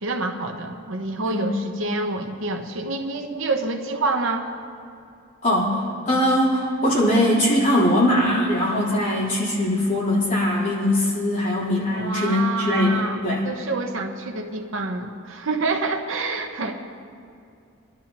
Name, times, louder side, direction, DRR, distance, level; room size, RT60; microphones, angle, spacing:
voice 1, 0.0-4.5 11.9-16.7, right 3 dB, 70° right, 4 dB, 0.9 m, -27 dB
voice 2, 5.4-13.5, left 1 dB, 40° left, -8 dB, 3.7 m, -21 dB
22.5 x 12.0 x 2.9 m, 2.4 s
head